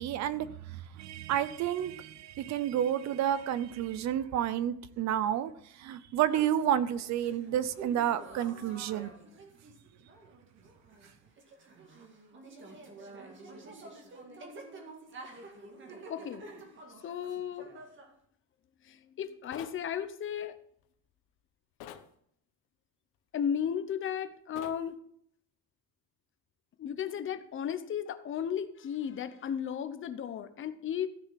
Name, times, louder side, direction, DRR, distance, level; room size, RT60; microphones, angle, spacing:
voice 1, 0.0-5.5 5.8-9.1, right 10 dB, 50° right, 16 dB, 0.7 m, -30 dB
sound 1, 6.3-18.1, right 3 dB, 30° right, 2.1 m, -49 dB
voice 2, 16.1-16.4 17.0-17.8 18.8-20.5 23.3-25.0 26.8-31.1, left 8 dB, 35° left, 11 dB, 0.9 m, -35 dB
sound 2, 19.5-19.8 21.8-22.1 24.6-24.8, left 10 dB, 85° left, 1.3 m, -45 dB
15.0 x 6.8 x 5.9 m, 0.68 s
cardioid pair, 170°, 36 cm